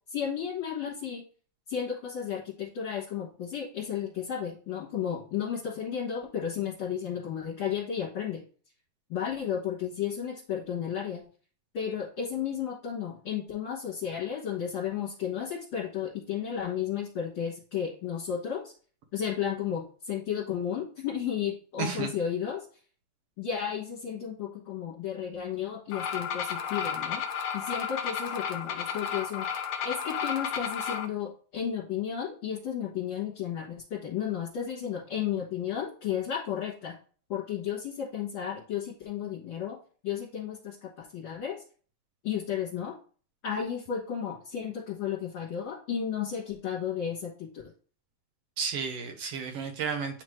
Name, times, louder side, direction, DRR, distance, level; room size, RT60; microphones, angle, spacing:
voice 1, 0.1-1.2 1.7-8.4 9.1-11.2 11.7-18.7 19.1-22.7 23.4-27.2 27.5-29.5 29.8-37.0 37.3-39.8 40.0-41.6 42.2-42.9 43.4-47.6, left 8 dB, 50° left, -7 dB, 2.2 m, -33 dB
voice 2, 21.8-22.1 48.6-50.2, right 6 dB, 70° right, 5 dB, 1.6 m, -32 dB
sound 1, 25.9-31.1, left 7 dB, 70° left, 1.5 m, -33 dB
9.6 x 3.2 x 3.2 m, 0.41 s
omnidirectional pair, 3.4 m